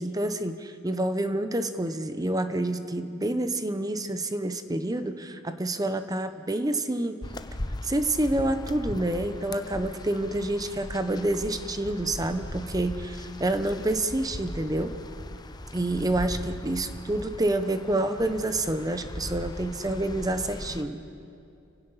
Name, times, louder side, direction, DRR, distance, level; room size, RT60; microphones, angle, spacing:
voice 1, 0.0-7.2 7.8-15.0 15.7-21.0, right 1 dB, 20° right, 9 dB, 0.8 m, -28 dB
sound 1, 7.2-20.8, left 1 dB, 20° left, 0.8 m, -39 dB
29.5 x 16.5 x 5.7 m, 2.5 s
head